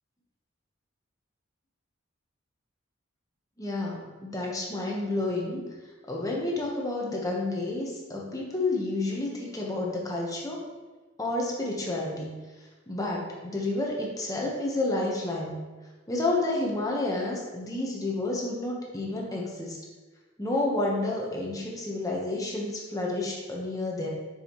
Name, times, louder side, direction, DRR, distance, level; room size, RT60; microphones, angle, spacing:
voice 1, 3.6-5.7 6.1-10.6 11.2-12.3 12.9-15.6 16.1-19.8 20.4-24.1, left 2 dB, 15° left, -2 dB, 1.0 m, -30 dB
6.8 x 5.4 x 3.0 m, 1.2 s
head